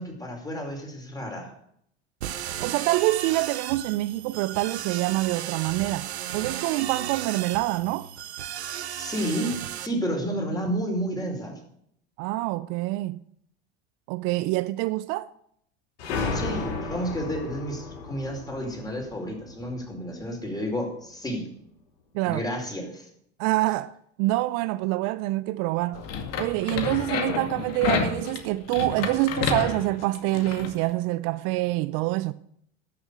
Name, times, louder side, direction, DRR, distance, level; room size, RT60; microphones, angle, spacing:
voice 1, 0.0-1.5 8.9-11.6 16.3-21.4 22.2-23.1, equal, 10° left, 4.8 m, -31 dB
sound 1, 2.2-9.9, right 11 dB, 90° right, 1.0 m, -35 dB
voice 2, 2.6-8.1 12.2-13.2 14.1-15.3 22.1-22.4 23.4-26.0 26.4-32.3, right 18 dB, 60° right, 0.6 m, -26 dB
sound 2, 16.0-20.4, left 4 dB, 75° left, 5.3 m, -34 dB
sound 3, 25.9-30.7, left 6 dB, 50° left, 2.2 m, -30 dB
12.5 x 7.0 x 8.2 m
hypercardioid pair, 95°, 32 cm